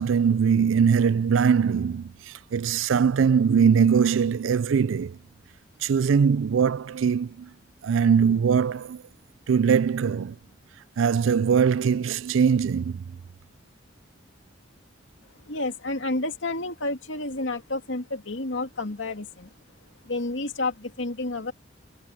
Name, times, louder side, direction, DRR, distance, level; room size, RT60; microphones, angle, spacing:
voice 1, 0.0-5.2 5.8-7.5 7.8-9.0 9.5-10.4 11.0-13.1, right 6 dB, 90° right, 0.4 m, -21 dB
voice 2, 15.5-19.5 20.0-21.5, left 2 dB, 80° left, 2.4 m, -30 dB
head